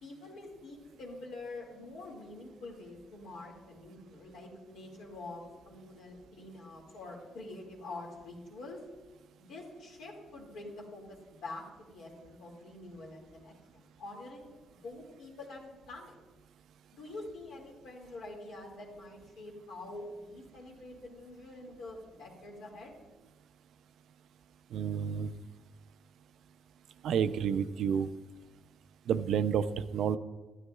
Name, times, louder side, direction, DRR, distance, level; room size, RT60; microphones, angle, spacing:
voice 1, 0.0-8.8 9.4-14.6 14.8-16.2 16.9-22.9, left 2 dB, 80° left, -2 dB, 2.0 m, -46 dB
voice 2, 24.7-25.3 27.0-28.1 29.1-30.2, right 8 dB, 75° right, 13 dB, 0.4 m, -30 dB
12.0 x 9.6 x 2.3 m, 1.2 s
cardioid pair, 90°, 0 cm